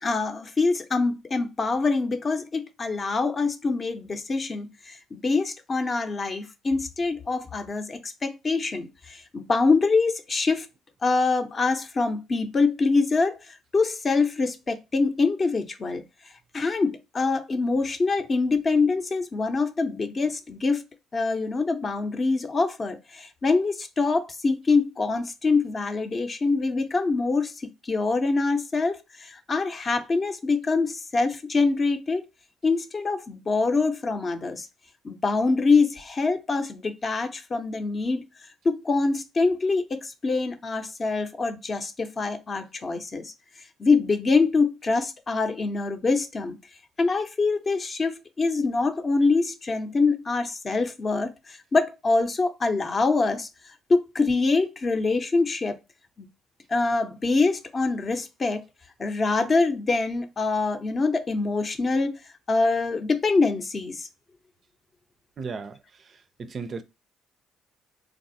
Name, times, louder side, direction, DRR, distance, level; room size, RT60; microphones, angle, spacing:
voice 1, 0.0-10.7 11.0-16.0 16.5-20.8 21.1-32.2 32.6-34.7 35.0-38.2 38.6-43.3 43.8-46.6 47.0-53.5 53.9-55.8 56.2-56.3 56.7-58.6 59.0-62.1 62.5-64.1, left 3 dB, 35° left, 0.6 m, -25 dB
voice 2, 65.4-65.8 66.4-66.8, right 4 dB, 45° right, 0.4 m, -34 dB
3.4 x 2.3 x 2.6 m
supercardioid pair, 75°, 0 cm